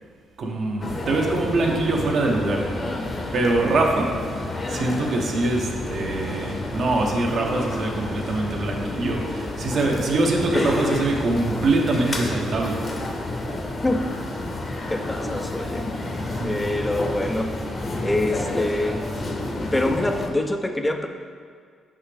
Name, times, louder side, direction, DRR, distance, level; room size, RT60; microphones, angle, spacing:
voice 1, 0.4-2.7 3.3-12.8 16.4-16.5, right 2 dB, 60° right, 0 dB, 0.9 m, -24 dB
sound 1, 0.8-20.3, left 2 dB, 35° left, 0.8 m, -30 dB
voice 2, 14.9-15.9 16.4-17.6 18.0-19.0 19.7-21.1, left 1 dB, 10° left, 5 dB, 0.4 m, -25 dB
5.7 x 5.6 x 3.4 m, 2.1 s
cardioid pair, 90°, 0 cm